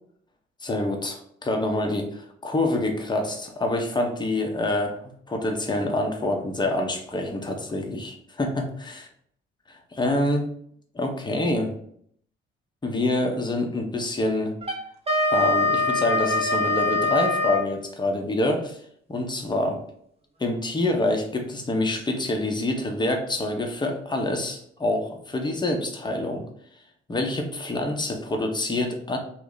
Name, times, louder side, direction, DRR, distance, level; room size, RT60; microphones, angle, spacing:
voice 1, 0.6-8.9 9.7-10.5 10.9-11.7 12.8-14.5 15.3-18.8 19.1-19.8 20.4-26.4 27.1-29.2, left 1 dB, 15° left, 3 dB, 0.7 m, -26 dB
Wind instrument woodwind instrument, 14.6-17.7, left 2 dB, 20° right, 0.8 m, -23 dB
2.8 x 2.1 x 3.8 m, 0.67 s
hypercardioid pair, 45°, 30 cm